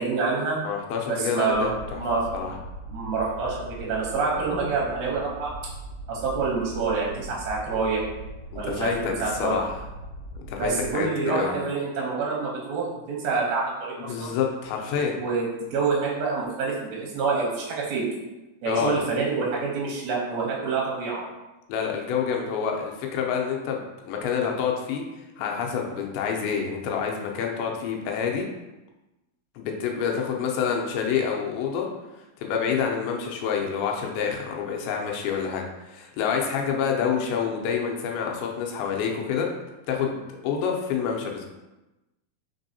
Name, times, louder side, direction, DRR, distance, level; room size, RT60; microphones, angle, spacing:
voice 1, 0.0-0.6 1.1-2.3 2.9-5.5 6.1-8.0 8.6-9.6 10.6-14.3 14.9-18.1 18.6-21.3, right 4 dB, 75° right, -4 dB, 1.8 m, -27 dB
voice 2, 0.6-2.0 2.3-2.6 8.7-9.8 10.4-11.5 14.0-15.2 18.7-19.0 21.7-25.0 25.4-28.5 29.6-31.9 32.4-35.6 35.9-39.5 39.9-41.5, left 6 dB, 85° left, 1 dB, 2.5 m, -27 dB
sound 1, 1.5-10.9, right 1 dB, 60° left, 1.6 m, -40 dB
5.3 x 3.4 x 2.7 m, 1.0 s
omnidirectional pair, 4.4 m